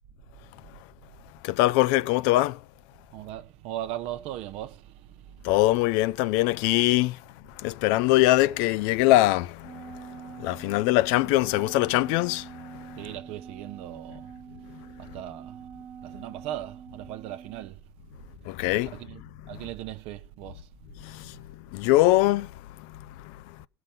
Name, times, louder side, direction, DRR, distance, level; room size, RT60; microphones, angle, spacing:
voice 1, 1.4-2.6 5.4-7.2 7.5-13.0 14.7-14.8 18.4-18.9 21.0-23.6, left 17 dB, 60° left, 0.5 m, -23 dB
voice 2, 3.1-5.4 13.0-17.9 18.9-21.1, right 13 dB, 55° right, 0.7 m, -39 dB
Wind instrument woodwind instrument, 9.6-17.7, right 7 dB, 30° right, 1.1 m, -45 dB
17.5 x 5.9 x 5.4 m
hypercardioid pair, 95°, 13 cm